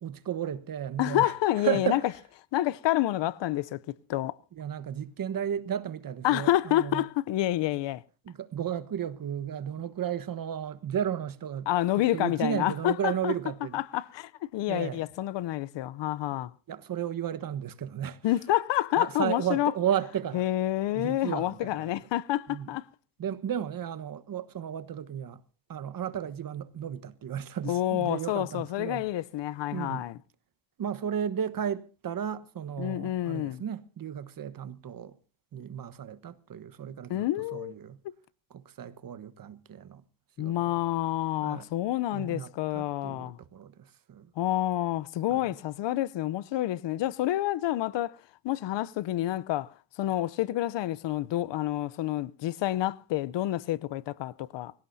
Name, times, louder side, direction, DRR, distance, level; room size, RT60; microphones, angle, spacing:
voice 1, 0.0-1.3 1.6-2.0 4.5-7.0 8.2-11.7 12.0-13.8 14.7-15.0 16.7-18.2 19.0-20.4 20.9-21.9 22.5-22.7 23.2-25.4 25.7-29.1 29.7-30.1 30.8-35.2 35.5-37.3 37.5-38.0 38.5-40.0 40.4-40.8 41.4-41.7 42.1-44.3 45.3-45.5, right 9 dB, 45° right, 1.3 m, -34 dB
voice 2, 1.0-2.0 2.5-4.4 6.2-8.0 11.7-13.3 13.7-16.5 18.2-19.7 20.3-22.9 27.6-30.2 32.8-33.6 37.1-37.8 40.4-43.4 44.4-48.2 48.4-49.7 50.0-54.7, left 14 dB, 65° left, 0.8 m, -28 dB
25.0 x 16.5 x 2.7 m
cardioid pair, 100°, 47 cm